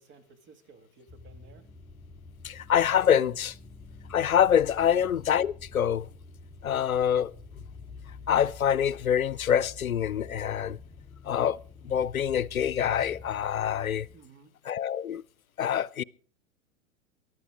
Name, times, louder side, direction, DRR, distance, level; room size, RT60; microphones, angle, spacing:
voice 1, 0.0-1.7 4.8-5.0 14.1-14.6, right 4 dB, 30° right, 2.1 m, -55 dB
sound 1, 1.1-14.2, left 3 dB, 15° left, 1.2 m, -48 dB
voice 2, 2.4-3.6 4.1-6.1 6.6-7.3 8.3-10.8 11.2-11.6 11.8-14.1 14.7-15.2 15.6-16.0, left 9 dB, 90° left, 0.6 m, -25 dB
22.5 x 12.0 x 3.7 m
hypercardioid pair, 100°, 41 cm